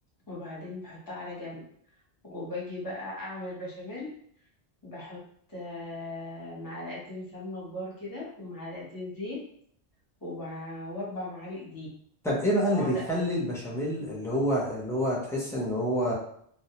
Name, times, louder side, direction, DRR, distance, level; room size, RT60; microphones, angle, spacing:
voice 1, 0.3-1.6 2.2-4.1 4.8-5.2 5.5-9.4 10.2-11.9 12.7-13.4, left 2 dB, 20° left, -5 dB, 0.9 m, -38 dB
voice 2, 12.2-16.1, equal, 5° left, -5 dB, 0.5 m, -27 dB
2.3 x 2.0 x 2.8 m, 0.65 s
omnidirectional pair, 1.1 m